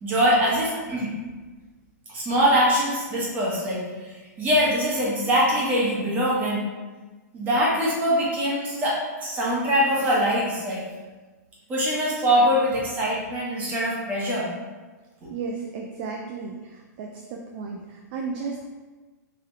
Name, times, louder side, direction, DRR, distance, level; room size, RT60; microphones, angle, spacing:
voice 1, 0.0-1.1 2.1-6.6 7.3-10.8 11.7-14.5, equal, 20° right, -6 dB, 1.1 m, -23 dB
voice 2, 15.3-18.6, right 4 dB, 35° right, 1 dB, 0.4 m, -34 dB
4.9 x 2.9 x 3.5 m, 1.3 s
hypercardioid pair, 160°, 10 cm